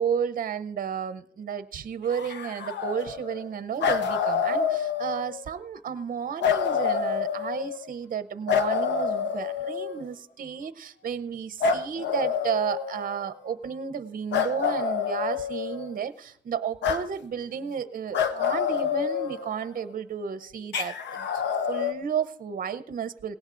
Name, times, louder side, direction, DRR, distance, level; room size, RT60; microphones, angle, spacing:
voice 1, 0.0-21.3 21.7-23.4, right 7 dB, 50° right, 14 dB, 0.7 m, -32 dB
sound 1, 2.1-3.5 3.8-5.4 6.4-7.9 8.5-10.1 11.6-13.3 14.3-16.0 16.8-17.0 18.1-19.8 20.7-21.9, left 6 dB, 80° left, 1.0 m, -27 dB
18.0 x 17.0 x 2.5 m, 0.71 s
cardioid pair, 85°, 18 cm